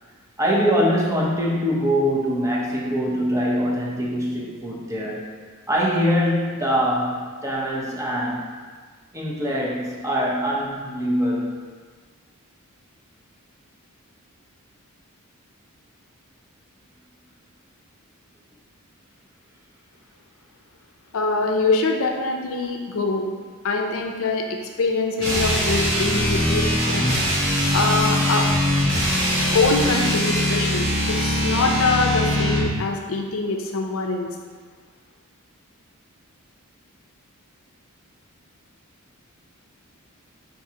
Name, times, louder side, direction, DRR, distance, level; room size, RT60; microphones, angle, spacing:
voice 1, 0.4-5.3 5.7-8.5 9.1-11.6, equal, 15° right, -4 dB, 0.6 m, -23 dB
voice 2, 21.1-23.3 23.6-24.4 24.8-27.1 27.7-28.4 29.5-34.4, left 3 dB, 65° left, 2 dB, 0.5 m, -24 dB
sound 1, 25.2-32.7, equal, 55° right, 1.3 m, -22 dB
6.0 x 2.5 x 2.8 m, 1.5 s
head